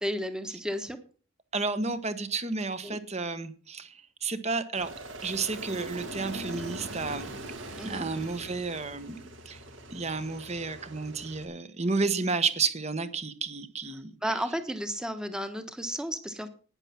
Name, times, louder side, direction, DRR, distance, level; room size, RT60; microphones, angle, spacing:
voice 1, 0.0-1.0 2.8-3.0 7.8-8.1 14.2-16.5, equal, 5° right, 9 dB, 1.2 m, -33 dB
voice 2, 1.5-3.9 4.2-4.9 5.2-7.3 7.8-9.2 9.4-9.6 9.9-14.2, right 4 dB, 30° right, 11 dB, 1.2 m, -31 dB
Aircraft, 4.8-11.5, right 2 dB, 60° right, 2.2 m, -41 dB
11.5 x 9.9 x 5.9 m, 0.40 s
head